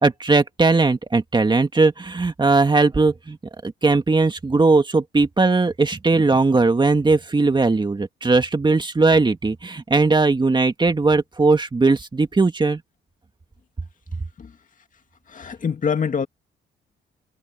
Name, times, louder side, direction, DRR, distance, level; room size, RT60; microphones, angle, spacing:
voice 1, 0.0-3.4 3.6-12.8, right 3 dB, 25° right, 2.0 m, -19 dB
voice 2, 15.3-16.3, left 6 dB, 40° left, 2.2 m, -25 dB
cardioid pair, 90°, 20 cm